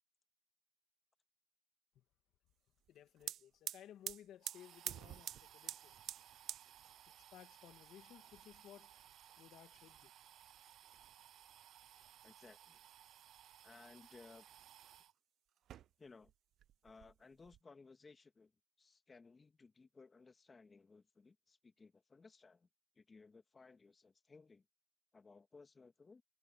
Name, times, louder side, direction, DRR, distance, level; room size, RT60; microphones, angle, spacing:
voice 1, 2.9-6.1 7.2-8.9 9.4-10.1, left 11 dB, 80° left, 2.1 m, -59 dB
sound 1, 2.9-3.0 3.2-15.1 15.6-16.3 16.6-17.6, right 11 dB, 75° right, 0.4 m, -51 dB
voice 2, 12.2-12.8 13.6-14.5 16.0-16.3 16.8-18.5 18.8-22.7 23.0-24.6 25.1-26.2, left 4 dB, 30° left, 2.0 m, -61 dB
cardioid pair, 90°, 0 cm